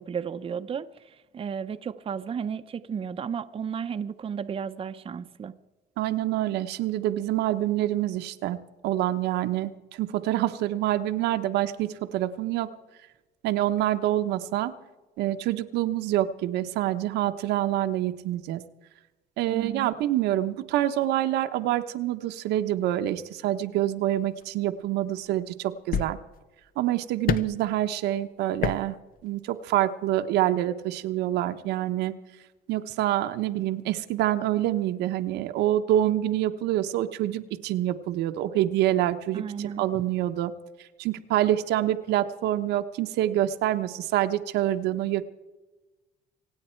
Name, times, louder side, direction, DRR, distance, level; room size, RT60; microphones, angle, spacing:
voice 1, 0.0-5.5 19.5-19.9 39.3-39.9, right 7 dB, 35° right, 0.7 m, -33 dB
voice 2, 6.0-12.7 13.4-14.7 15.2-18.6 19.4-26.2 26.8-29.0 29.2-32.1 32.7-40.5 41.0-45.3, right 13 dB, 85° right, 0.9 m, -26 dB
sound 1, 24.3-24.4 25.4-25.5 25.9-26.5 27.3-27.6 28.6-28.9 29.2-29.3, left 8 dB, 55° left, 0.8 m, -28 dB
26.0 x 9.1 x 4.5 m
cardioid pair, 110°, 17 cm